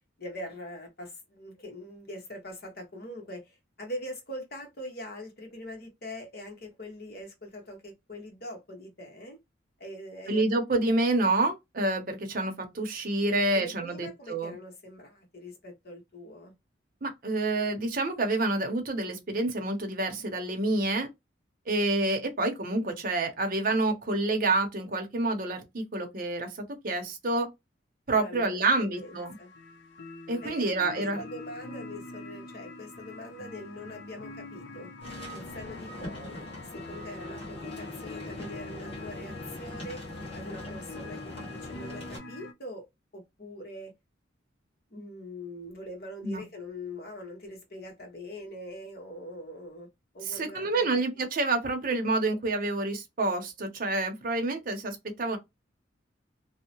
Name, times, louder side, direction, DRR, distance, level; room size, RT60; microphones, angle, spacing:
voice 1, 0.2-9.4 9.8-10.4 13.3-16.5 28.1-29.5 30.4-34.9 35.3-36.5 36.7-40.0 40.3-42.8 43.1-43.9 44.9-49.9 50.1-51.0, left 1 dB, 55° left, 1.1 m, -43 dB
voice 2, 10.3-14.5 17.0-21.1 21.7-26.5 26.8-27.5 28.1-29.4 30.3-31.2 46.2-46.4 50.3-55.4, right 2 dB, 45° right, 0.7 m, -28 dB
sound 1, 28.9-42.5, left 3 dB, 70° left, 0.6 m, -44 dB
sound 2, 35.0-42.2, left 1 dB, 30° left, 1.0 m, -42 dB
2.7 x 2.1 x 2.8 m
head